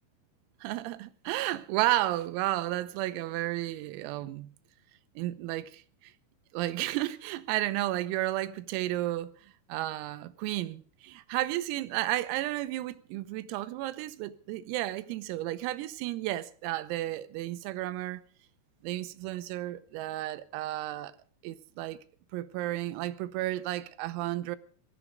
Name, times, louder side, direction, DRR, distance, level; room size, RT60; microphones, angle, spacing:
voice 1, 0.6-4.5 5.2-6.1 6.5-9.3 9.7-18.2 18.8-21.1 21.4-22.0 22.3-24.6, right 15 dB, 85° right, 3.6 m, -32 dB
19.5 x 13.5 x 5.1 m
omnidirectional pair, 6.0 m